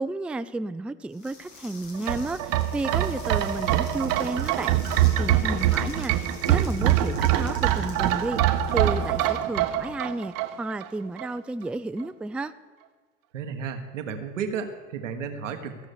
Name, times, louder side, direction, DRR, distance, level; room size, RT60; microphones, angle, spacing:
voice 1, 0.0-4.8 5.2-8.4 8.7-12.5, right 2 dB, 5° right, 13 dB, 0.3 m, -32 dB
sound 1, 1.1-10.1, left 4 dB, 90° left, 2.2 m, -48 dB
sound 2, 1.9-10.9 11.2-11.3, right 11 dB, 60° right, 0.9 m, -24 dB
voice 2, 13.3-15.9, right 6 dB, 90° right, 6 dB, 1.2 m, -33 dB
14.5 x 6.2 x 6.6 m, 1.4 s
hypercardioid pair, 65°, 37 cm